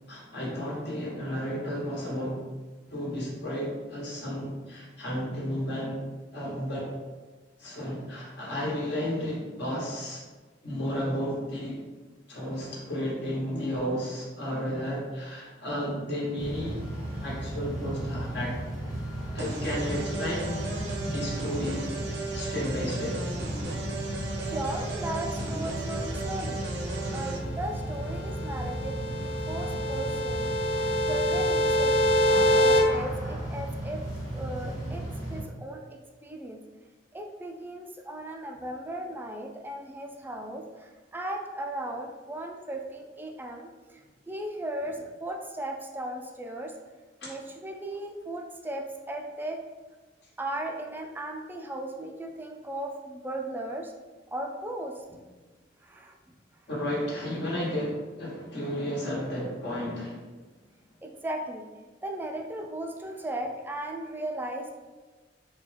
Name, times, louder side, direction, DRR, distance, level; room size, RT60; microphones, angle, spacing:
voice 1, 0.1-2.4 2.9-6.0 6.3-6.9 7.6-10.2 10.6-11.8 12.3-16.8 17.1-18.5 19.3-21.8 22.3-23.2 47.2-47.3 56.7-60.3, equal, 65° left, -5 dB, 1.1 m, -32 dB
sound 1, 16.4-35.4, right 1 dB, 20° left, 0.8 m, -35 dB
sound 2, 19.4-27.4, right 2 dB, 65° right, 0.6 m, -36 dB
voice 2, 24.4-26.6 27.1-30.6 31.1-31.9 32.5-34.0 34.3-36.6 37.1-46.7 47.2-49.6 50.4-53.9 54.3-55.2 55.8-56.1 61.0-61.7 62.0-64.7, right 1 dB, 10° right, 2 dB, 0.3 m, -36 dB
sound 3, 27.9-32.8, equal, 90° left, 0.6 m, -25 dB
3.8 x 2.3 x 3.3 m, 1.3 s
head